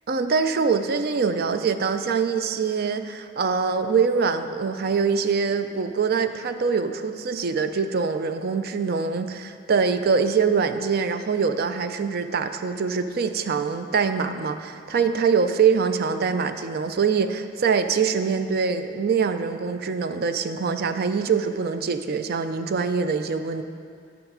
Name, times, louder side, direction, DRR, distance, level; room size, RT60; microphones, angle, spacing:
voice 1, 0.1-23.6, right 5 dB, 55° right, 9 dB, 0.4 m, -24 dB
9.8 x 7.0 x 4.8 m, 2.3 s
head